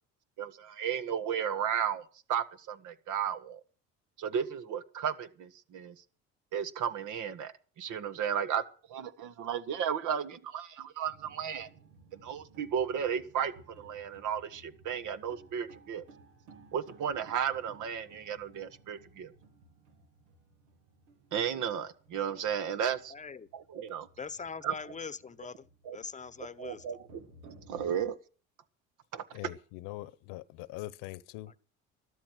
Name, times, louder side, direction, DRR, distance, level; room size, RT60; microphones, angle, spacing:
voice 1, 0.4-3.6 4.2-6.0 6.5-8.6 8.9-11.7 12.2-16.0 16.7-19.3 21.3-23.1 23.5-24.1 24.6-24.7 25.8-26.0 26.6-27.1 27.7-28.2 29.1-29.2, right 8 dB, 65° right, 1.7 m, -34 dB
sound 1, 11.0-28.0, right 3 dB, 90° right, 2.5 m, -58 dB
voice 2, 23.1-23.5 24.2-25.7 25.9-26.8, left 5 dB, 20° left, 0.9 m, -42 dB
voice 3, 29.3-31.5, left 18 dB, 80° left, 1.0 m, -42 dB
13.0 x 13.0 x 6.3 m
supercardioid pair, 85°, 33 cm